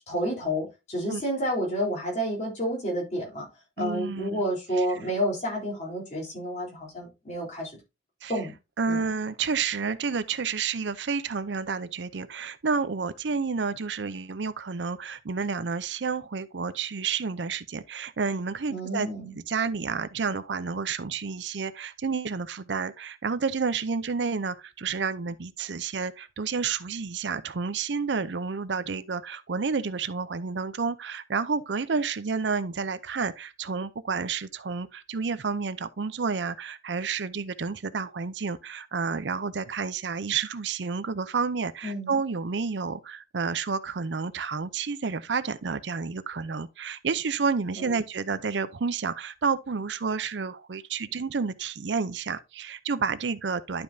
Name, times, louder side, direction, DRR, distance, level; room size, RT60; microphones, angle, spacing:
voice 1, 0.1-3.5 3.8-7.8 8.3-8.5 8.9-9.1 18.7-19.3 41.8-42.1 47.7-48.0, equal, 40° left, 3.8 m, -30 dB
voice 2, 3.8-4.4 4.8-4.9 8.2-8.3 8.8-19.1 19.5-53.8, right 5 dB, 75° right, 0.6 m, -30 dB
11.5 x 5.2 x 2.7 m
head